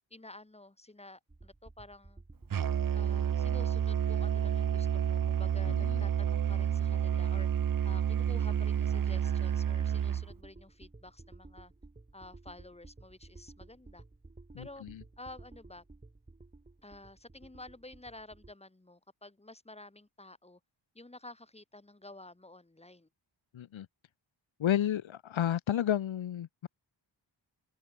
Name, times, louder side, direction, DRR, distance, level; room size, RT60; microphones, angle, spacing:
voice 1, 0.1-2.2 2.9-11.7 12.1-14.0 14.6-14.8 15.2-15.8 16.8-20.6 20.9-23.1, left 2 dB, 15° left, 6.9 m, -51 dB
sound 1, 1.3-18.5, right 2 dB, 15° right, 3.3 m, -54 dB
Musical instrument, 2.5-10.3, right 8 dB, 45° right, 0.9 m, -29 dB
voice 2, 5.7-6.0 14.5-15.0 23.5-23.9 24.6-26.7, left 10 dB, 80° left, 1.3 m, -32 dB
wide cardioid pair, 165°, 47 cm